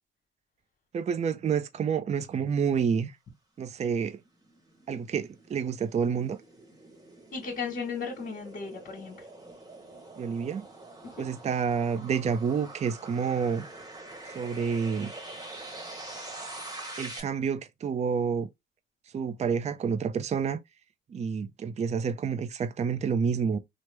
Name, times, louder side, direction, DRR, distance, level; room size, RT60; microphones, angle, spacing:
voice 1, 0.9-3.1 3.6-4.2 4.9-6.4 10.2-10.7 11.2-13.7 14.3-15.1 17.0-18.5 19.1-20.6 21.1-23.6, right 6 dB, 35° right, 0.4 m, -29 dB
sound 1, 4.0-17.2, right 2 dB, 20° right, 1.1 m, -45 dB
voice 2, 7.3-9.3 11.2-11.3, left 5 dB, 45° left, 1.3 m, -35 dB
3.1 x 2.0 x 3.2 m
cardioid pair, 90°, 20 cm